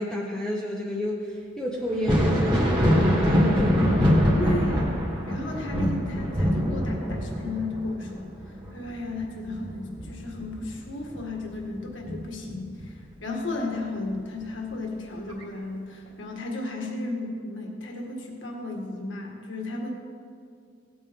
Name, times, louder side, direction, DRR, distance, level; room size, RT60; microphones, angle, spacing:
voice 1, 0.0-4.1, equal, 5° left, -3 dB, 0.9 m, -31 dB
Thunder, 1.9-11.2 11.6-12.8 14.4-14.5 15.3-15.4, equal, 25° right, 2.3 m, -24 dB
voice 2, 4.3-4.9 5.3-8.3 8.7-19.9, left 2 dB, 70° left, 0 dB, 1.8 m, -34 dB
17.0 x 8.6 x 3.6 m, 2.3 s
head